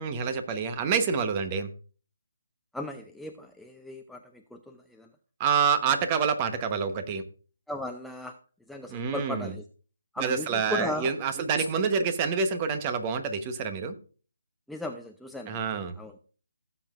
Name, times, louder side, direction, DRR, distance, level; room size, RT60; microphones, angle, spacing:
voice 1, 0.0-1.7 5.4-7.2 8.9-9.5 10.2-13.9 15.5-15.9, right 6 dB, 25° right, 9 dB, 1.0 m, -27 dB
voice 2, 2.7-5.1 7.7-8.3 8.7-9.6 10.1-11.1 11.6-11.7 14.7-15.6 16.0-16.1, left 1 dB, ahead, 3 dB, 0.5 m, -36 dB
17.0 x 7.5 x 2.5 m, 0.39 s
figure-of-eight pair, 160°, 0 cm